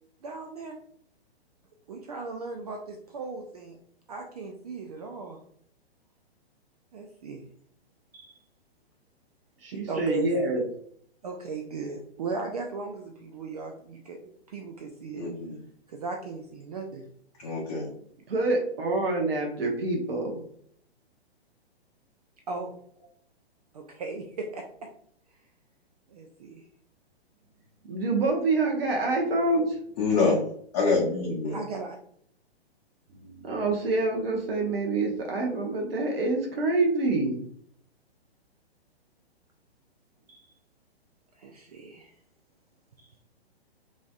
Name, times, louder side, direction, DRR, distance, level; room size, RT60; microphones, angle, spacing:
voice 1, 0.2-0.8 1.9-3.8 4.1-5.4 6.9-7.4 8.1-8.4 9.7-10.3 11.2-15.2 15.9-17.1 22.5-22.7 23.7-24.9 26.1-26.6 31.5-32.0 40.3-40.5 41.4-42.1 43.0-43.2, right 3 dB, 40° right, 2 dB, 0.4 m, -37 dB
voice 2, 9.6-10.6 18.3-20.4 27.9-29.8 33.2-37.4, right 2 dB, 65° right, 1 dB, 0.9 m, -26 dB
voice 3, 15.2-15.6 17.4-17.9 30.0-30.4 30.7-31.6, left 3 dB, 40° left, -4 dB, 0.8 m, -25 dB
3.1 x 2.7 x 2.3 m, 0.63 s
figure-of-eight pair, 115°, 32 cm